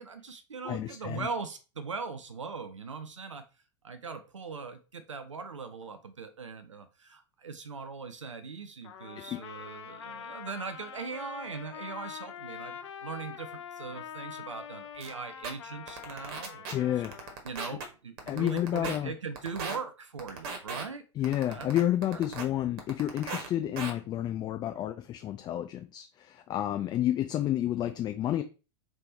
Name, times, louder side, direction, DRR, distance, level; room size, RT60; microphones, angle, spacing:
voice 1, 0.0-3.4 3.8-16.9 17.4-21.7 22.1-22.2, right 5 dB, 85° right, 9 dB, 0.5 m, -40 dB
voice 2, 0.6-1.3 9.3-9.4 16.7-17.2 17.7-17.8 18.3-19.1 21.2-28.4, left 12 dB, 30° left, 8 dB, 0.4 m, -30 dB
Trumpet, 8.8-17.4, left 8 dB, 65° left, 0.6 m, -44 dB
sound 1, 15.0-15.1 15.4-15.5 15.9-16.7 17.0-17.8 18.2-19.0 19.4-19.8 20.2-20.8 21.2-22.4 22.8-23.5 23.8-23.9, right 4 dB, 50° right, 1.3 m, -36 dB
3.4 x 3.1 x 4.0 m, 0.32 s
figure-of-eight pair, 90°, 15 cm